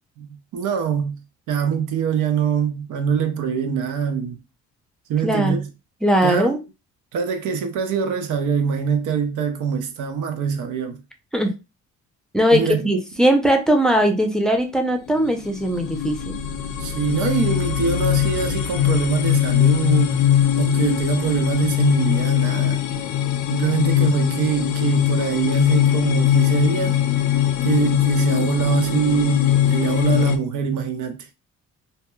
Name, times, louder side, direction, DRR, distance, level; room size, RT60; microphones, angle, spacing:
voice 1, 0.2-1.2 1.5-4.4 5.1-5.7 6.2-6.6 7.1-11.0 12.5-13.0 16.8-20.2 20.6-22.8 23.5-27.0 27.6-31.3, right 7 dB, 80° right, 0.6 m, -23 dB
voice 2, 6.0-6.6 11.3-11.5 12.3-16.4, equal, ahead, 0.5 m, -19 dB
sound 1, 15.1-30.4, left 11 dB, 75° left, 0.5 m, -21 dB
2.8 x 2.1 x 2.2 m
cardioid pair, 90°, 30 cm